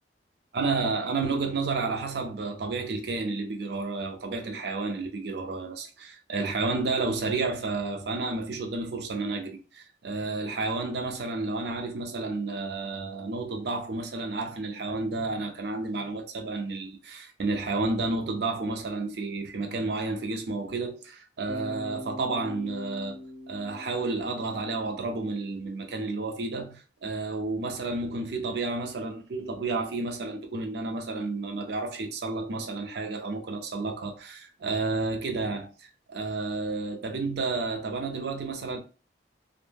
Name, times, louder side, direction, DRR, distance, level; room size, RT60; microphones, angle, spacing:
voice 1, 0.5-23.2 23.5-38.8, right 3 dB, 60° right, 0.5 m, -31 dB
Bass guitar, 21.5-25.5, left 1 dB, 25° left, 0.4 m, -43 dB
2.0 x 2.0 x 3.3 m
head